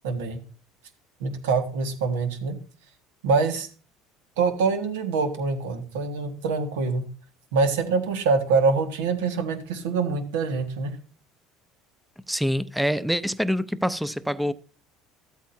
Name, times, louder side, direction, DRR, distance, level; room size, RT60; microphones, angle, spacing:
voice 1, 0.0-0.4 1.2-2.6 3.2-3.7 4.4-7.0 7.5-11.0, right 4 dB, 90° right, 1.6 m, -25 dB
voice 2, 12.3-14.5, equal, ahead, 0.6 m, -25 dB
13.0 x 8.3 x 2.7 m
supercardioid pair, 90°, 0 cm